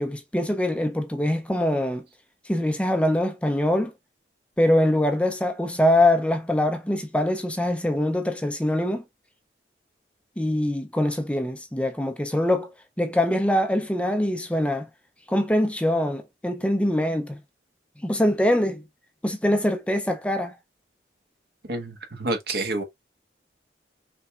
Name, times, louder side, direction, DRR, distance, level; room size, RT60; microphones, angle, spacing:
voice 1, 0.0-2.0 2.4-3.9 4.6-9.0 10.4-12.7 13.0-14.9 15.3-17.4 18.0-18.8 19.2-20.6, left 1 dB, 5° left, 0.5 m, -23 dB
voice 2, 21.7-22.8, right 2 dB, 60° right, 1.5 m, -28 dB
5.6 x 3.5 x 2.4 m
head